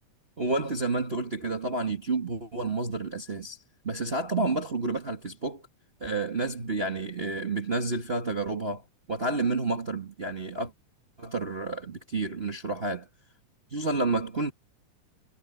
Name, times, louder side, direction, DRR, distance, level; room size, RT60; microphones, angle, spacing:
voice 1, 0.4-3.6 3.8-5.6 6.0-8.8 9.1-10.7 11.2-13.1 13.7-14.5, right 3 dB, 40° right, 0.8 m, -30 dB
omnidirectional pair, 3.8 m